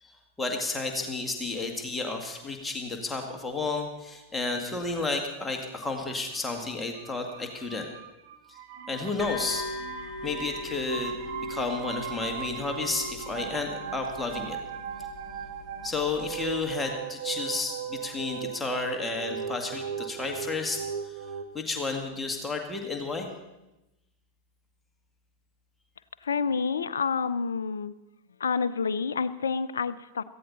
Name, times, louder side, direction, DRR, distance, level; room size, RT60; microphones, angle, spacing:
voice 1, 0.4-7.9 8.9-9.7 10.2-14.6 15.8-21.2 21.5-23.3, left 3 dB, 10° left, 2 dB, 1.9 m, -32 dB
sound 1, 6.3-21.4, right 9 dB, 50° right, 1.1 m, -38 dB
sound 2, 9.2-16.7, left 1 dB, 15° right, 5.3 m, -40 dB
voice 2, 26.2-28.0 28.4-30.2, left 5 dB, 70° left, 15 dB, 0.6 m, -28 dB
17.5 x 14.5 x 4.1 m, 0.97 s
figure-of-eight pair, 90°, 0 cm